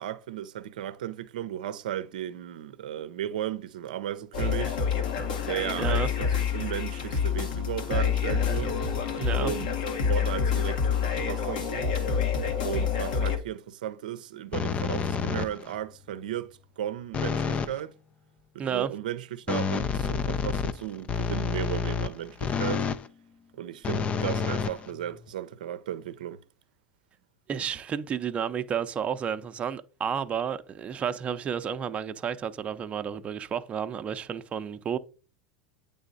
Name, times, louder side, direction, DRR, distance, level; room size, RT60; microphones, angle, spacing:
voice 1, 0.0-4.8 5.5-8.7 9.4-9.7 10.1-11.9 12.6-17.9 18.5-22.9 23.5-26.4, right 11 dB, 80° right, 0.6 m, -35 dB
sound 1, 4.3-13.4, left 6 dB, 80° left, 1.7 m, -27 dB
voice 2, 5.8-6.1 9.2-9.5 18.6-18.9 27.5-35.0, right 7 dB, 30° right, 0.6 m, -31 dB
sound 2, 14.5-15.8 17.1-17.8 19.5-23.1 23.8-25.3, left 6 dB, 30° left, 0.4 m, -29 dB
8.8 x 3.5 x 4.0 m
hypercardioid pair, 105°, 4 cm